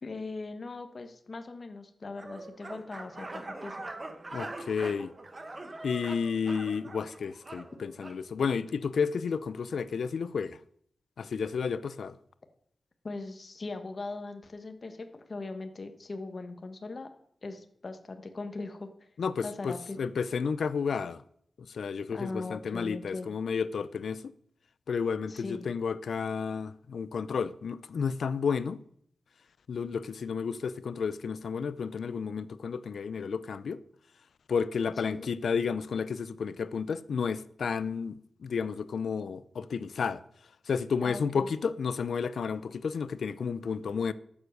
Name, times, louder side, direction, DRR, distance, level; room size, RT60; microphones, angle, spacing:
voice 1, 0.0-3.8 13.0-17.1 17.4-19.1 19.4-20.0 22.1-23.3 25.3-25.7 35.0-35.3 41.0-41.5, left 3 dB, 45° left, 1.3 m, -40 dB
sound 1, 2.2-8.2, right 2 dB, 30° right, 1.3 m, -43 dB
voice 2, 4.3-5.1 5.8-10.6 11.2-12.2 19.2-21.2 21.7-24.2 24.9-28.8 29.7-33.8 34.5-40.2 40.7-44.1, left 6 dB, 90° left, 0.6 m, -32 dB
12.5 x 7.4 x 6.6 m
wide cardioid pair, 135°, 0 cm